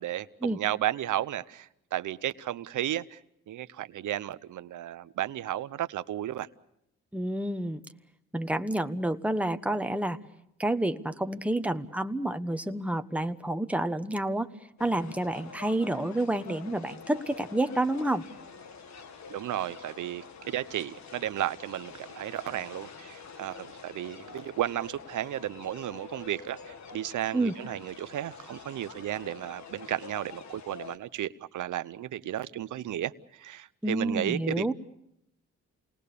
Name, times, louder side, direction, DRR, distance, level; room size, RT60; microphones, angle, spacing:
voice 1, 0.0-3.2 3.5-6.5 19.3-34.7, right 12 dB, 75° right, 0.9 m, -33 dB
voice 2, 7.1-7.8 8.3-10.2 10.6-14.5 14.8-18.2 27.3-27.6 33.8-34.7, right 1 dB, 5° right, 1.2 m, -29 dB
sound 1, 14.8-31.0, left 5 dB, 65° left, 1.8 m, -47 dB
29.0 x 20.0 x 6.9 m
cardioid pair, 70°, 30 cm